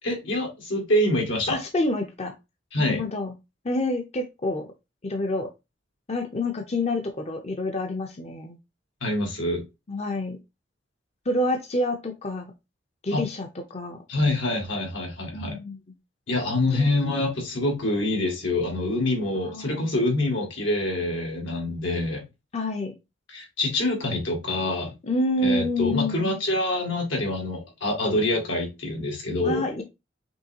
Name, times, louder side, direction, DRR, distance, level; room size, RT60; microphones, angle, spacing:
voice 1, 0.0-1.6 2.7-3.0 9.0-9.6 13.1-13.3 14.1-15.6 16.3-22.2 23.3-24.9 25.4-29.7, left 1 dB, 80° left, 2.0 m, -26 dB
voice 2, 1.5-2.3 2.8-3.3 3.6-4.7 5.0-5.5 6.1-8.6 9.9-10.4 11.3-12.5 13.0-14.0 15.3-15.8 16.7-16.9 19.3-20.0 22.5-22.9 25.0-26.4 29.4-29.8, left 2 dB, 35° left, 0.6 m, -28 dB
5.4 x 3.1 x 2.8 m
head